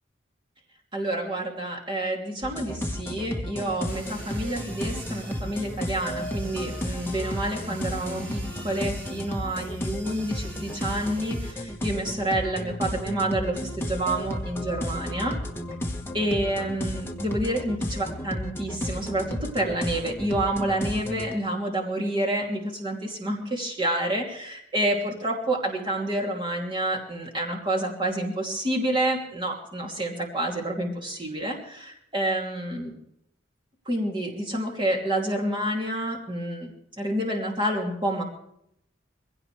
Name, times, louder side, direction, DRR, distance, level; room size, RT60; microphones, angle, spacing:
voice 1, 0.9-15.4 16.1-33.0 33.9-38.2, right 1 dB, 25° right, -1 dB, 2.8 m, -28 dB
sound 1, 2.4-21.3, left 1 dB, 10° left, 1.4 m, -33 dB
sound 2, 3.9-11.5, right 2 dB, 60° right, 7.6 m, -45 dB
22.5 x 16.5 x 3.4 m, 0.75 s
head